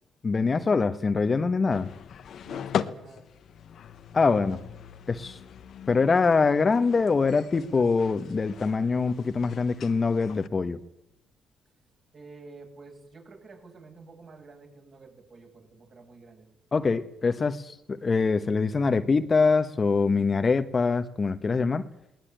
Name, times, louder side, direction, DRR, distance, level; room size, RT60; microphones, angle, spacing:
voice 1, 0.2-1.9 4.1-4.6 5.1-5.4 5.9-10.8 16.7-21.8, left 4 dB, 35° left, 10 dB, 1.2 m, -24 dB
sound 1, 1.7-10.5, left 8 dB, 65° left, 1.2 m, -39 dB
voice 2, 2.4-3.2 12.1-16.5, right 3 dB, 45° right, 2 dB, 7.3 m, -49 dB
20.0 x 19.5 x 9.2 m, 0.81 s
cardioid pair, 90°, 0 cm